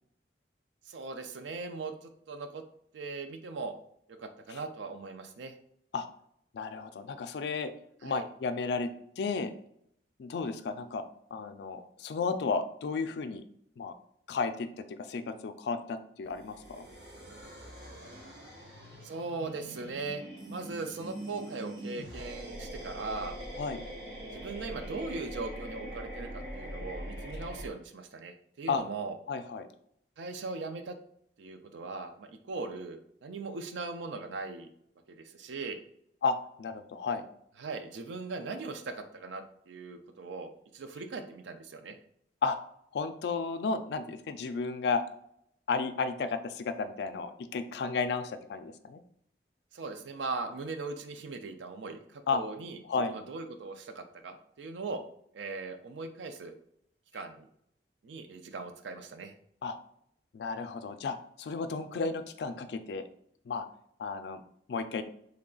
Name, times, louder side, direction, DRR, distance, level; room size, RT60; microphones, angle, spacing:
voice 1, 0.9-2.6 2.9-3.7 4.1-5.6 8.0-8.3 19.0-20.2 20.5-23.4 24.3-29.2 30.2-31.0 31.4-34.7 35.1-35.8 37.1-37.2 37.6-42.0 49.7-55.0 55.3-56.6 57.1-57.5 58.0-59.3, right 3 dB, 90° right, 7 dB, 0.4 m, -39 dB
voice 2, 6.5-7.7 8.0-8.9 9.2-9.5 10.2-11.0 11.3-13.4 13.8-13.9 14.3-16.9 23.6-23.8 28.7-28.8 29.3-29.7 36.2-37.3 42.4-42.6 42.9-45.0 45.7-49.0 52.3-52.4 52.9-53.2 59.6-59.8 60.3-63.0 63.5-63.7 64.0-64.4 64.7-65.0, left 4 dB, 65° left, 10 dB, 0.3 m, -33 dB
sound 1, 16.3-27.7, right 1 dB, 65° right, 1.4 m, -43 dB
3.3 x 2.3 x 3.7 m, 0.70 s
head